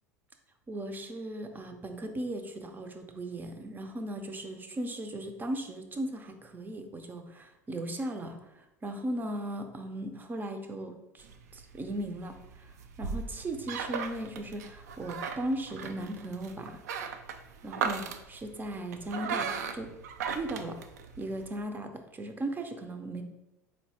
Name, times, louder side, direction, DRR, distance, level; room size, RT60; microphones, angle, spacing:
voice 1, 0.7-16.8 17.6-19.9 20.3-20.8 21.2-23.2, right 1 dB, 20° right, 6 dB, 0.6 m, -37 dB
sound 1, 11.2-21.5, right 6 dB, 70° right, 0.4 m, -38 dB
4.3 x 3.3 x 2.8 m, 0.94 s
figure-of-eight pair, 75°, 9 cm